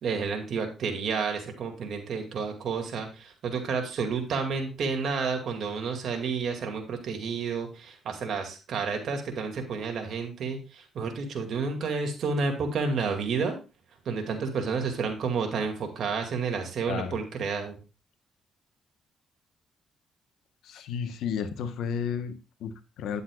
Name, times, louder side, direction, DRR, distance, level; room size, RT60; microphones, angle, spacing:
voice 1, 0.0-13.6 14.1-17.8, right 5 dB, 65° right, 4 dB, 2.2 m, -30 dB
voice 2, 16.9-17.2 20.6-23.2, left 7 dB, 80° left, 10 dB, 1.0 m, -33 dB
10.0 x 8.0 x 2.4 m, 0.31 s
cardioid pair, 90°, 0 cm